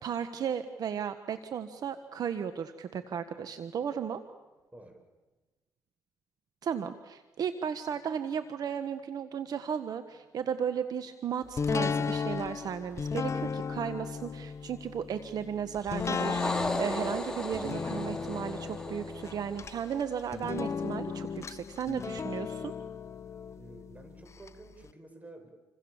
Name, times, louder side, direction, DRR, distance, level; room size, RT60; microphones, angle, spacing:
voice 1, 0.0-4.2 6.6-22.7, right 8 dB, 65° right, 9 dB, 1.4 m, -35 dB
voice 2, 4.7-5.0 23.5-25.5, right 2 dB, 20° right, 4 dB, 7.9 m, -50 dB
sound 1, 11.6-24.5 24.9-25.0, left 5 dB, 40° left, 1.0 m, -35 dB
sound 2, 15.8-20.4, left 2 dB, 10° left, 4.0 m, -36 dB
28.0 x 26.0 x 7.3 m, 1.1 s
cardioid pair, 75°, 7 cm